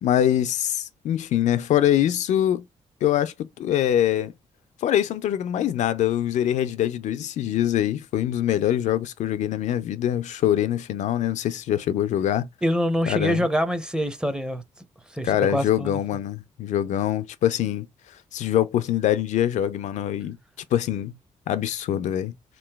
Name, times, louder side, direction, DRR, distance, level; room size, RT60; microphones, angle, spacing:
voice 1, 0.0-2.6 3.0-4.3 4.8-12.5 13.1-13.5 15.2-17.9 18.3-20.4 20.7-21.1 21.5-22.3, left 11 dB, 75° left, 0.4 m, -24 dB
voice 2, 12.6-14.6 15.1-16.0, equal, 5° right, 0.6 m, -25 dB
3.1 x 2.9 x 2.2 m
cardioid pair, 90°, 12 cm